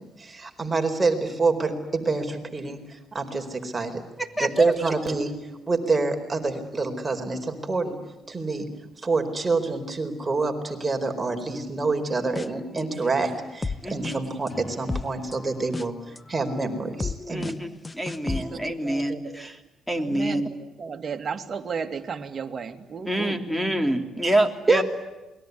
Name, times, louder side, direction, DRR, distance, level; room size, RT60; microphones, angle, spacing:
voice 1, 0.2-4.0 4.4-5.3 5.7-8.0 8.3-8.7 9.0-17.5 18.3-18.4 24.2-24.3 24.7-24.8, right 3 dB, 25° right, 4 dB, 4.6 m, -26 dB
voice 2, 4.2-4.7 12.7-13.1 13.8-14.1 17.3-19.5 19.9-20.5 23.1-24.8, right 1 dB, ahead, 7 dB, 3.3 m, -27 dB
sound 1, 12.1-12.8 13.2-18.7, left 3 dB, 20° left, 0.9 m, -34 dB
voice 3, 18.2-19.5 20.0-24.0, right 6 dB, 45° right, 6 dB, 2.5 m, -35 dB
28.0 x 22.0 x 9.6 m, 1.1 s
cardioid pair, 90°, 0 cm